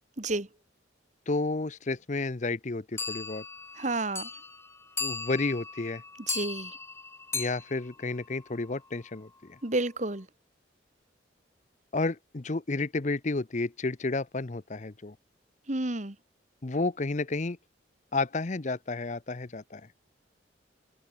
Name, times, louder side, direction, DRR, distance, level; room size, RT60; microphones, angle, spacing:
voice 1, 0.2-0.5 3.8-4.3 6.3-6.8 9.6-10.3 15.7-16.1, right 2 dB, 40° right, 1.7 m, -30 dB
voice 2, 1.3-3.4 5.0-6.0 7.3-9.6 11.9-15.1 16.6-17.6 18.1-19.9, left 3 dB, 40° left, 0.7 m, -31 dB
sound 1, 3.0-8.9, left 4 dB, 15° left, 3.7 m, -37 dB
open air
head